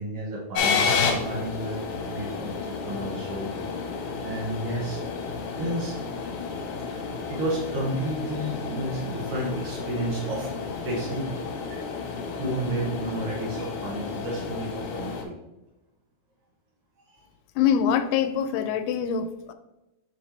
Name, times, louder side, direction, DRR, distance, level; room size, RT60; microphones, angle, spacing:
voice 1, 0.0-3.5 4.2-5.0 5.6-6.0 6.9-7.0 7.3-10.5 10.8-11.2 11.7-11.8 12.4-15.3 17.1-17.2, right 1 dB, 75° right, -5 dB, 1.3 m, -31 dB
sound 1, 0.5-15.2, left 5 dB, 75° left, 2.7 m, -31 dB
voice 2, 17.6-19.5, left 8 dB, 90° left, 9 dB, 2.6 m, -24 dB
8.4 x 4.3 x 3.3 m, 0.97 s
omnidirectional pair, 4.5 m